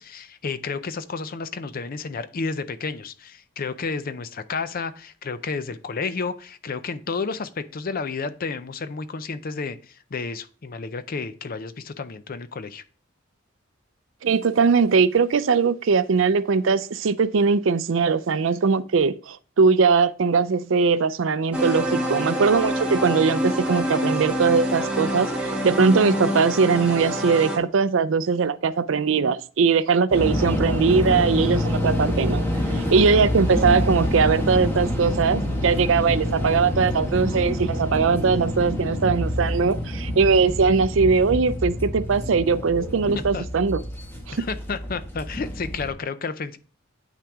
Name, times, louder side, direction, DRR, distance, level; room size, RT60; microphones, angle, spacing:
voice 1, 0.0-12.8 43.3-43.5 44.3-46.6, left 4 dB, 45° left, 0.5 m, -31 dB
voice 2, 14.2-32.5 32.7-43.8 44.3-44.4, right 5 dB, 70° right, 0.5 m, -20 dB
sound 1, 21.5-27.6, equal, 5° right, 1.3 m, -26 dB
sound 2, 30.1-45.9, left 1 dB, 10° left, 1.6 m, -27 dB
8.3 x 5.9 x 3.5 m
head